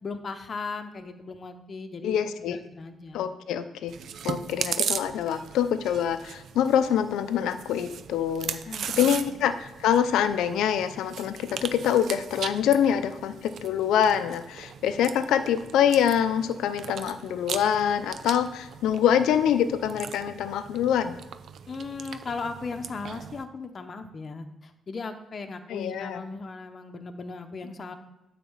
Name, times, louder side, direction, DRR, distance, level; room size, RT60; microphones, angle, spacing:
voice 1, 0.0-3.3 8.7-9.3 21.7-27.9, left 4 dB, 40° left, 6 dB, 0.9 m, -37 dB
voice 2, 2.0-2.6 3.1-3.9 4.2-8.6 9.0-21.2 25.7-26.2, left 9 dB, 85° left, 11 dB, 0.6 m, -25 dB
Chewing mastication, 3.9-23.4, right 8 dB, 65° right, 0.6 m, -38 dB
9.4 x 4.2 x 7.2 m, 0.98 s
cardioid pair, 90°, 0 cm